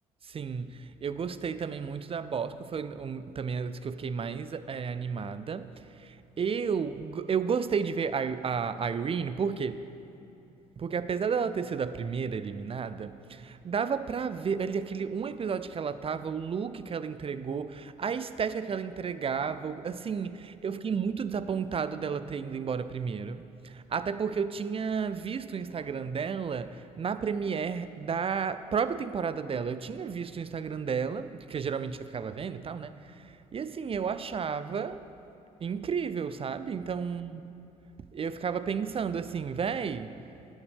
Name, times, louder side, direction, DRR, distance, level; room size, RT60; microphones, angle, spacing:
voice 1, 0.2-5.7 6.0-9.8 10.8-35.0 35.6-37.4 38.1-40.2, right 6 dB, 30° right, 13 dB, 0.5 m, -32 dB
13.0 x 9.4 x 3.5 m, 2.9 s
hypercardioid pair, 50°, 18 cm